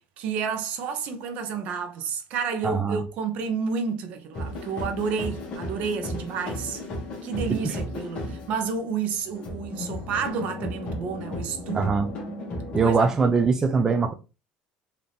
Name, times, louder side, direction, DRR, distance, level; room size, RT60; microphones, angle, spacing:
voice 1, 0.0-6.8 7.2-11.9 12.7-13.3, right 6 dB, 60° right, 0.9 m, -30 dB
voice 2, 2.6-3.0 11.7-12.1 12.7-14.1, right 5 dB, 20° right, 0.4 m, -22 dB
sound 1, 4.3-12.9, left 1 dB, 45° left, 1.5 m, -34 dB
3.9 x 2.8 x 3.4 m
cardioid pair, 145°, 3 cm